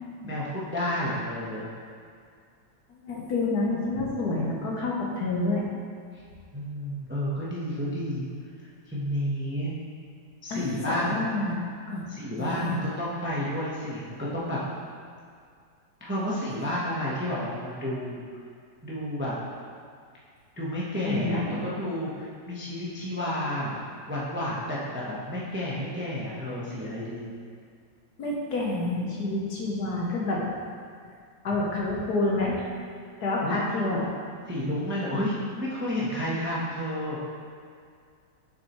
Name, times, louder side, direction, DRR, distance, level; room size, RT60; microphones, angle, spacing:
voice 1, 0.2-1.7 6.5-8.3 8.9-9.7 10.4-11.3 12.1-14.6 16.0-18.2 18.8-19.3 20.6-23.8 24.1-27.2 33.4-33.6 34.5-37.2, equal, 10° right, -7 dB, 0.7 m, -31 dB
voice 2, 2.9-5.6 10.5-11.6 11.9-12.0 12.4-12.8 21.0-21.6 28.2-30.4 31.4-32.6 33.2-34.0, left 2 dB, 65° left, -3 dB, 1.4 m, -28 dB
7.2 x 6.3 x 3.1 m, 2.2 s
omnidirectional pair, 2.0 m